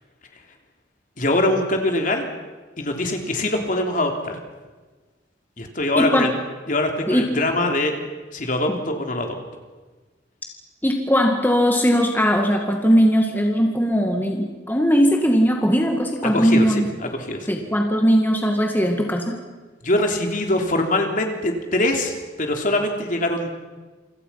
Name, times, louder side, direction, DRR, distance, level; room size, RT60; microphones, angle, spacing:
voice 1, 1.2-2.3 2.8-4.4 5.6-6.3 6.7-8.0 8.3-9.4 16.3-17.5 19.8-23.5, left 1 dB, 45° left, 3 dB, 3.5 m, -23 dB
voice 2, 6.0-6.3 7.1-7.4 8.7-8.8 10.8-16.9 17.5-19.4, equal, 10° left, 2 dB, 2.1 m, -19 dB
28.5 x 25.5 x 5.9 m, 1.3 s
head